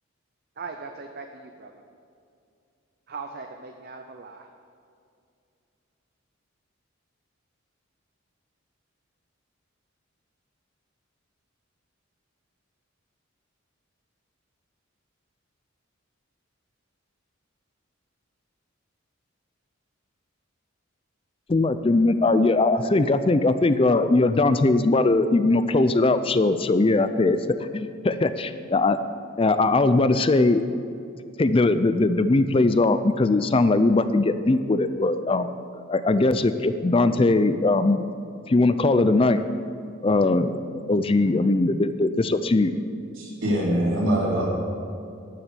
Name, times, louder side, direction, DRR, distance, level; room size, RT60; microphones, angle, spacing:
voice 1, 0.6-1.7 3.1-4.5, right 4 dB, 50° right, 4 dB, 0.7 m, -39 dB
voice 2, 21.5-27.4 27.7-29.0 29.4-30.6 31.4-35.5 35.9-38.0 38.5-39.4 40.0-40.5 40.9-42.7, left 2 dB, 25° left, 11 dB, 0.4 m, -20 dB
voice 3, 43.2-44.4, right 1 dB, 75° right, -5 dB, 3.3 m, -23 dB
12.0 x 7.2 x 8.1 m, 2.4 s
head